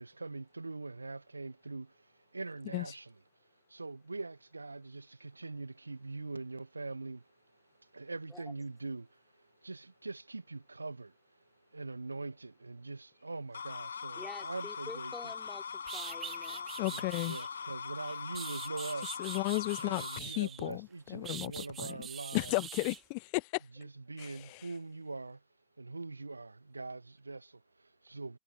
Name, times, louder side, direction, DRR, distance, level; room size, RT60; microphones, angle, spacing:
voice 1, 0.0-3.1 3.4-15.1 16.9-19.2 19.8-22.6 23.7-25.4 25.8-28.4, right 3 dB, 80° right, 1.3 m, -43 dB
sound 1, 13.5-20.2, left 6 dB, 70° left, 4.4 m, -41 dB
voice 2, 14.2-16.7, left 3 dB, 10° left, 4.1 m, -48 dB
sound 2, 15.5-15.6 15.9-17.5 18.1-20.7 21.2-23.0, right 9 dB, 25° right, 1.6 m, -44 dB
voice 3, 16.8-17.4 19.2-21.9 22.3-23.6 24.2-24.3, left 37 dB, 45° left, 0.5 m, -34 dB
figure-of-eight pair, 90°, 0 cm